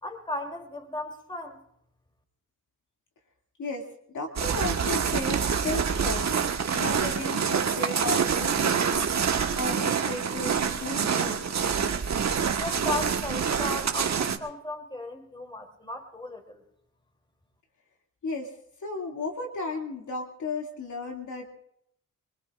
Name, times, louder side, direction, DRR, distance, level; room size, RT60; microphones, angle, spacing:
voice 1, 0.0-1.6 12.5-16.6, left 2 dB, 15° left, 4 dB, 3.1 m, -36 dB
voice 2, 3.6-6.3 6.7-9.3 9.5-11.4 18.2-18.6 18.8-21.6, left 2 dB, 60° left, 1 dB, 2.5 m, -34 dB
sound 1, 4.4-14.4, right 6 dB, 55° right, 1.4 m, -26 dB
25.0 x 21.0 x 2.5 m, 0.72 s
supercardioid pair, 55°, 34 cm